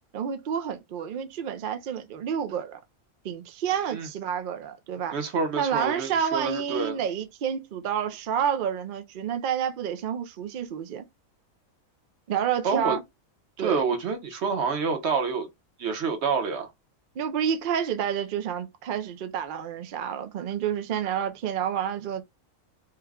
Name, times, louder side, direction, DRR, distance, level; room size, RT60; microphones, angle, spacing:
voice 1, 0.1-2.8 3.2-5.1 5.6-11.0 12.3-13.0 13.6-13.8 17.2-22.2, right 8 dB, 75° right, 0.4 m, -29 dB
voice 2, 5.1-7.0 12.6-13.0 13.6-15.5 15.8-16.7, right 5 dB, 55° right, 1.1 m, -27 dB
3.2 x 2.2 x 3.5 m
omnidirectional pair, 1.4 m